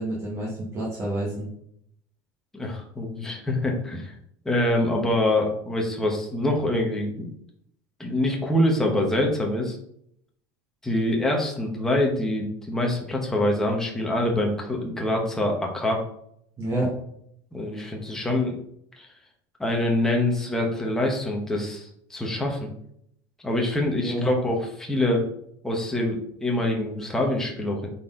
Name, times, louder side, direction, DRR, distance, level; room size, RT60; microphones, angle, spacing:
voice 1, 0.0-1.5 16.6-16.9 24.0-24.3, right 1 dB, 25° right, -6 dB, 1.8 m, -28 dB
voice 2, 2.5-4.1 4.4-7.3 8.0-9.8 10.8-16.0 17.5-18.6 19.0-19.1 19.6-22.7 23.4-25.3 25.6-27.9, left 1 dB, 5° left, 0 dB, 1.1 m, -25 dB
8.4 x 4.3 x 3.8 m, 0.70 s
cardioid pair, 170°, 11 cm